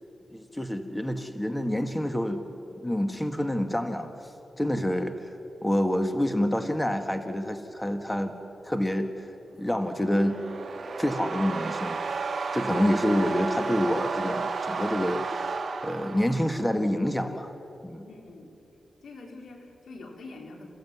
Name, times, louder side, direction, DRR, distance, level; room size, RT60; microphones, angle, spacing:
voice 1, 0.3-2.4 2.8-4.1 4.6-5.3 5.6-8.4 8.6-9.3 9.6-10.4 11.0-12.0 12.5-15.5 15.8-17.5 17.8-18.1, equal, 10° left, 7 dB, 1.7 m, -27 dB
sound 1, 9.7-16.8, right 4 dB, 60° right, 1.8 m, -32 dB
voice 2, 18.0-18.5 19.0-20.7, left 3 dB, 80° left, 1 dB, 3.8 m, -45 dB
29.0 x 16.0 x 9.5 m, 3.0 s
cardioid pair, 75°, 0 cm